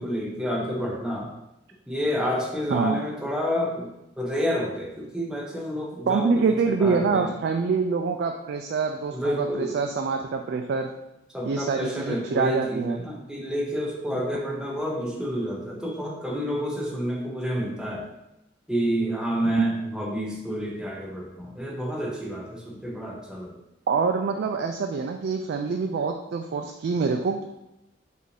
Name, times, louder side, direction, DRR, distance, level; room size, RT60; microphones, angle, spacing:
voice 1, 0.0-1.3 1.9-3.9 4.2-7.4 9.1-9.8 11.3-18.1 18.7-23.6, equal, 5° right, -4 dB, 0.9 m, -29 dB
voice 2, 6.1-10.9 11.4-13.0 14.1-14.2 23.9-27.4, right 4 dB, 60° right, 4 dB, 0.3 m, -25 dB
5.3 x 2.6 x 3.3 m, 0.90 s
head